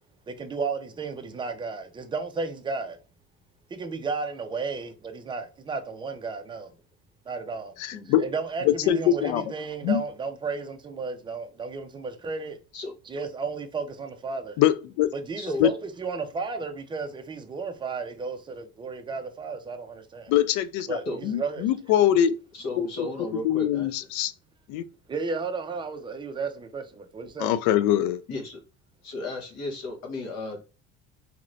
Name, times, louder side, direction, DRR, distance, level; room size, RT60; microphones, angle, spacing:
voice 1, 0.3-3.0 3.7-6.7 7.3-7.7 8.1-12.6 13.1-14.6 15.1-20.3 20.9-21.7 25.1-27.5, right 4 dB, 15° right, 0.4 m, -33 dB
voice 2, 7.8-8.3 8.6-9.4 9.8-10.0 14.6-15.1 15.6-15.7 20.3-22.3 22.8-23.1 23.3-24.3 24.7-24.8 27.4-28.2, left 11 dB, 75° left, 0.4 m, -23 dB
voice 3, 15.4-15.7 21.1-21.2 22.5-24.0 28.3-28.6 29.0-30.6, left 2 dB, 60° left, 1.2 m, -34 dB
3.0 x 2.9 x 2.6 m
cardioid pair, 135°, 30 cm